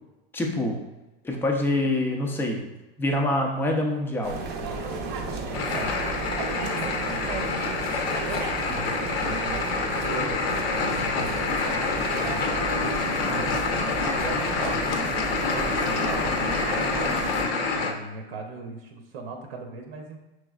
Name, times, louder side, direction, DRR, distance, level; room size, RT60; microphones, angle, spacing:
voice 1, 0.3-0.8 1.2-4.4, left 1 dB, 5° left, 1 dB, 0.4 m, -26 dB
sound 1, 4.2-17.4, right 3 dB, 35° right, 0.6 m, -33 dB
sound 2, 5.5-17.9, left 4 dB, 80° left, 0.8 m, -27 dB
voice 2, 6.4-8.9 9.2-11.5 12.2-12.8 13.3-17.3 17.7-20.2, right 3 dB, 75° right, 3 dB, 0.8 m, -38 dB
6.0 x 3.2 x 2.3 m, 1.1 s
supercardioid pair, 140°, 30 cm